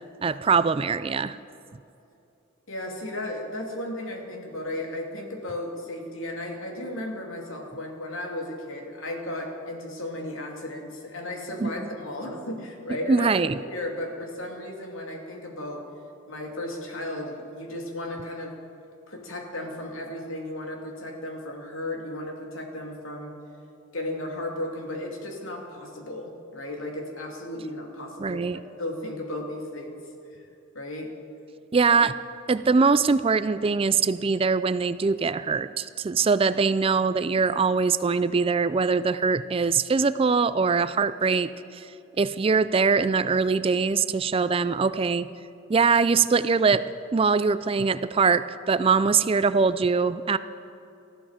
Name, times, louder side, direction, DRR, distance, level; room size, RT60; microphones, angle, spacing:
voice 1, 0.2-1.4 11.6-11.9 13.1-13.5 28.2-28.6 31.7-32.1 32.5-41.9 42.2-45.3 45.7-46.8 47.1-50.4, right 5 dB, 25° right, 14 dB, 0.3 m, -22 dB
voice 2, 2.7-13.3 13.5-15.8 16.3-18.5 19.1-23.4 23.9-30.0 30.3-30.4 30.7-31.1, left 1 dB, 80° left, 1 dB, 2.7 m, -35 dB
19.5 x 14.0 x 5.0 m, 2.7 s
head